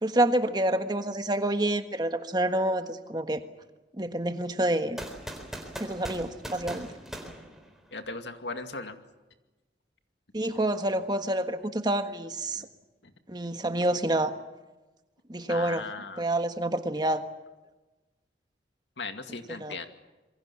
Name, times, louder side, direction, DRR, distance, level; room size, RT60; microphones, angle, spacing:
voice 1, 0.0-3.4 4.0-5.0 5.8-6.9 10.3-12.7 13.3-14.3 15.3-15.9 16.2-17.2 19.6-19.8, right 1 dB, 25° right, 8 dB, 1.5 m, -28 dB
sound 1, 5.0-8.2, right 1 dB, ahead, 4.0 m, -40 dB
voice 2, 7.9-9.0 12.5-12.7 15.5-16.3 19.0-19.9, left 3 dB, 85° left, 7 dB, 2.3 m, -37 dB
27.0 x 23.0 x 7.2 m, 1.1 s
head